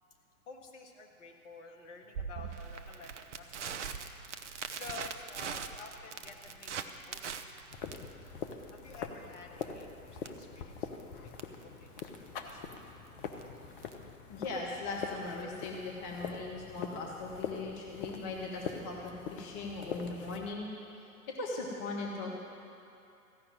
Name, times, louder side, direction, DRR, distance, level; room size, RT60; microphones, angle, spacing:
voice 1, 0.5-4.1 4.7-7.2 8.7-10.9 11.2-12.8, left 5 dB, 50° left, 2 dB, 1.7 m, -51 dB
Crackle, 2.1-14.1, right 7 dB, 50° right, 0.8 m, -43 dB
sound 1, 7.7-20.5, left 6 dB, 35° left, 0.9 m, -43 dB
voice 2, 14.3-20.7 21.3-22.4, left 3 dB, 10° left, -1 dB, 0.4 m, -39 dB
15.0 x 5.8 x 9.0 m, 2.8 s
figure-of-eight pair, 120°, 44 cm